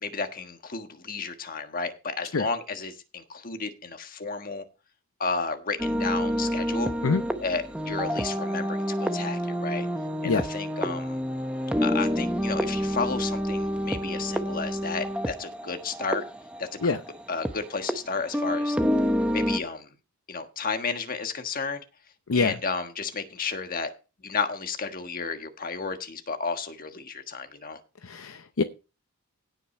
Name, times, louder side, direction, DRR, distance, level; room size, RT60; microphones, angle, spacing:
voice 1, 0.0-4.7 5.2-6.9 7.4-9.9 10.2-11.2 11.8-16.2 16.6-16.9 17.3-18.8 19.3-19.9 20.3-21.8 22.3-23.9 24.2-27.8, left 4 dB, 40° left, 1.4 m, -32 dB
sound 1, 5.8-17.5 17.9-18.0 18.3-19.6, equal, 5° right, 0.7 m, -28 dB
voice 2, 28.0-28.6, left 4 dB, 65° left, 0.7 m, -25 dB
16.5 x 5.9 x 4.4 m
head